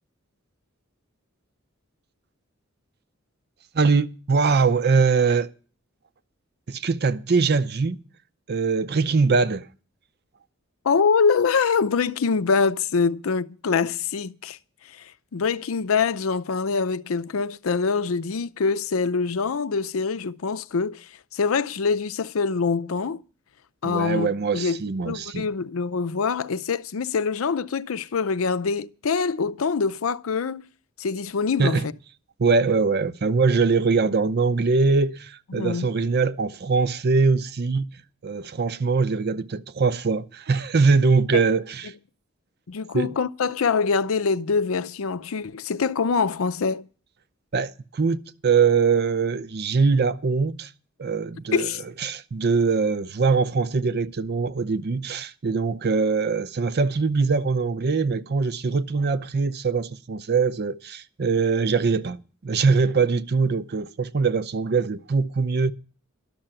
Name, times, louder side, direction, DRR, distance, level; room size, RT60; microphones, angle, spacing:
voice 1, 3.7-5.5 6.7-8.0 8.5-9.7 23.8-25.5 31.6-31.9 32.4-41.9 42.9-43.2 47.5-50.7 51.0-51.7 52.0-62.2 62.4-65.7, right 4 dB, 50° right, 0.6 m, -22 dB
voice 2, 10.8-14.6 15.0-23.2 23.8-30.6 31.0-31.8 35.5-35.9 42.7-46.9 51.5-51.8, left 5 dB, 80° left, 0.5 m, -24 dB
12.0 x 6.8 x 8.8 m
head